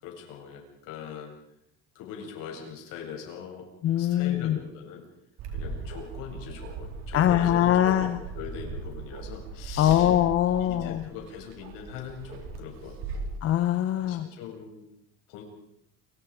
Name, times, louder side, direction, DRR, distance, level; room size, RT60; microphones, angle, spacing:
voice 1, 0.0-1.3 1.9-3.7 4.0-5.0 5.5-8.0 8.3-10.1 10.6-13.2 14.0-14.8 15.3-15.4, left 7 dB, 60° left, 1 dB, 8.0 m, -41 dB
voice 2, 3.8-4.6 7.1-8.2 9.8-11.0 13.4-14.3, left 11 dB, 40° left, 9 dB, 1.2 m, -23 dB
Bark, 5.4-13.4, right 4 dB, 45° right, 4.9 m, -39 dB
29.0 x 25.0 x 5.2 m, 0.76 s
cardioid pair, 155°, 36 cm